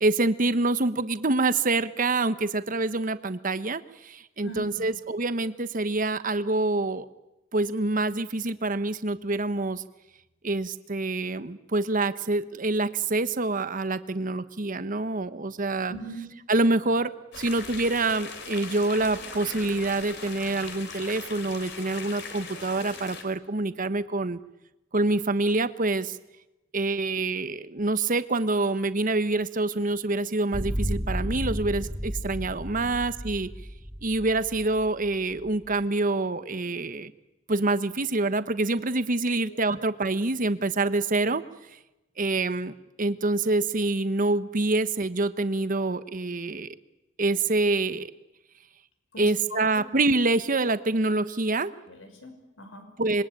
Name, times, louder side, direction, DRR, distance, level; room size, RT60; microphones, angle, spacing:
voice 1, 0.0-7.1 7.5-9.8 10.4-15.9 16.5-24.4 24.9-26.2 26.7-33.5 34.0-37.1 37.5-41.4 42.2-46.7 47.2-48.1 49.2-51.7 53.0-53.2, right 2 dB, 45° right, 12 dB, 1.2 m, -26 dB
voice 2, 15.9-16.2 39.4-39.6 49.1-49.9 51.9-52.9, right 1 dB, 85° left, 6 dB, 5.8 m, -41 dB
sound 1, 17.3-23.2, left 4 dB, 60° left, 4.1 m, -40 dB
low atmosphir, 30.5-35.7, equal, 5° right, 1.9 m, -33 dB
26.5 x 22.5 x 9.1 m, 0.97 s
head